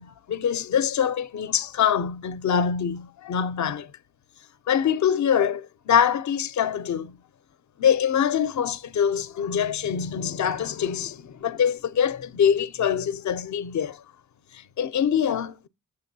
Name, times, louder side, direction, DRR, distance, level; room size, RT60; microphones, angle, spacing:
voice 1, 0.0-3.9 4.7-7.1 7.8-14.0 14.5-15.7, left 8 dB, 55° left, 0.5 m, -24 dB
6.8 x 6.5 x 2.7 m
cardioid pair, 65°, 34 cm